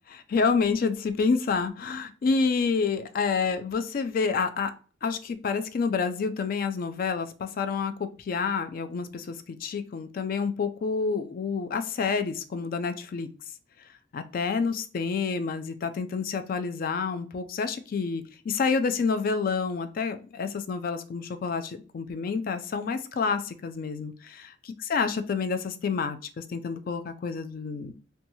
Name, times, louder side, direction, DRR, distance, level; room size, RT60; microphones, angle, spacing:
voice 1, 0.1-4.7 5.0-13.3 14.1-27.9, left 5 dB, 50° left, 9 dB, 0.3 m, -28 dB
2.8 x 2.2 x 2.6 m, 0.38 s
head